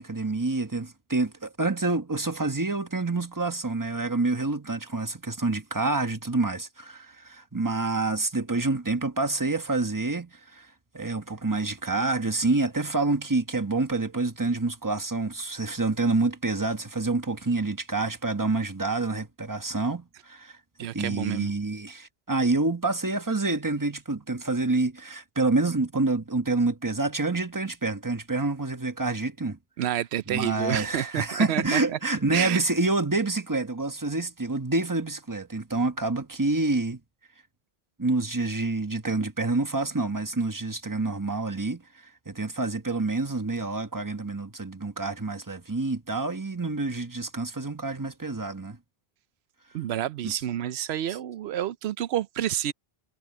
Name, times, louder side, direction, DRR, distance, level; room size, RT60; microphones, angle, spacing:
voice 1, 0.0-10.7 10.9-20.6 20.9-29.6 30.3-37.0 38.0-48.8 50.2-50.4 51.1-51.2, right 3 dB, 20° right, 1.3 m, -27 dB
voice 2, 20.8-21.5 29.8-31.8 32.3-32.6 49.7-52.7, right 11 dB, 90° right, 0.9 m, -29 dB
omnidirectional pair, 1.0 m